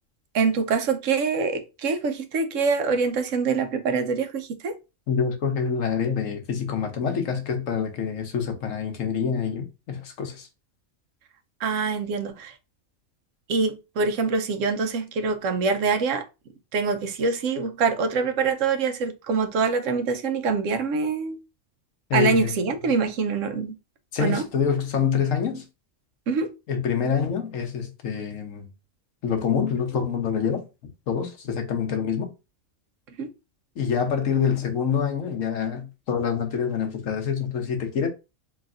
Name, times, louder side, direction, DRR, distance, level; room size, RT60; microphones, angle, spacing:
voice 1, 0.3-4.8 11.6-12.5 13.5-16.2 16.7-21.4 22.1-23.8 24.2-24.5 26.3-26.5 33.2-33.3, right 4 dB, 80° right, 1.1 m, -25 dB
voice 2, 5.1-10.5 22.1-22.5 24.1-25.6 26.7-28.7 29.2-30.6 31.1-32.3 33.8-38.1, left 7 dB, 90° left, 1.3 m, -26 dB
4.0 x 3.3 x 2.5 m
omnidirectional pair, 1.3 m